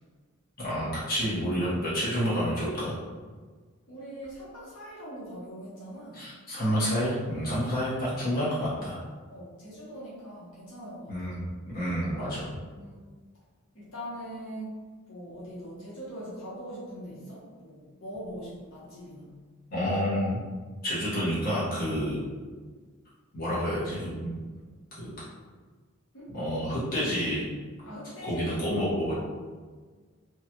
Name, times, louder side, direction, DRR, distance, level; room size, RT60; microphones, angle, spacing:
voice 1, 0.6-2.9 6.1-9.0 11.1-11.5 11.7-12.6 19.7-20.4 20.8-22.2 23.3-24.3 25.0-25.1 26.3-27.5 28.2-29.1, equal, 45° left, -10 dB, 1.1 m, -29 dB
voice 2, 3.9-6.2 9.3-11.3 12.6-13.0 13.7-14.8 15.1-19.4 26.1-26.3 27.8-28.7, equal, 75° left, -8 dB, 1.1 m, -42 dB
3.2 x 2.3 x 2.8 m, 1.5 s
head